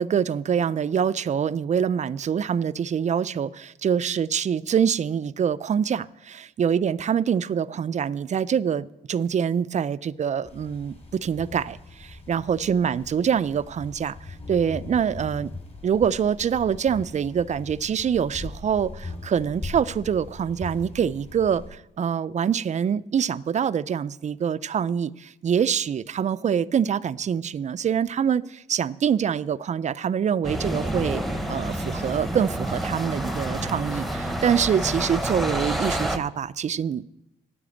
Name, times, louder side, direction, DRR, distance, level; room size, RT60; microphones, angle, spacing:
voice 1, 0.0-14.2 14.5-15.5 15.8-31.2 31.5-37.1, right 8 dB, 35° right, 17 dB, 0.4 m, -25 dB
sound 1, 10.4-21.7, left 3 dB, 30° left, 3.1 m, -40 dB
sound 2, 30.4-36.2, right 1 dB, ahead, 1.0 m, -28 dB
10.0 x 8.6 x 8.4 m, 0.90 s
cardioid pair, 90°, 20 cm